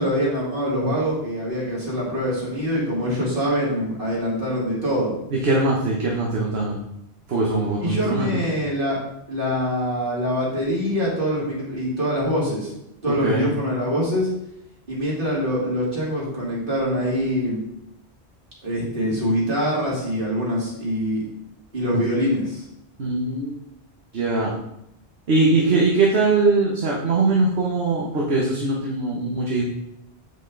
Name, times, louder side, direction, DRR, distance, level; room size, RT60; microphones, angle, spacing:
voice 1, 0.0-5.1 7.8-9.0 9.3-12.7 13.0-14.3 14.9-17.6 18.6-21.2 21.7-22.6, equal, 50° right, -5 dB, 3.2 m, -24 dB
voice 2, 5.3-6.8 7.3-8.4 13.1-13.5 23.0-23.5 24.1-24.5 25.3-29.6, right 3 dB, 65° right, -2 dB, 1.5 m, -21 dB
7.8 x 7.4 x 3.9 m, 0.81 s
omnidirectional pair, 1.1 m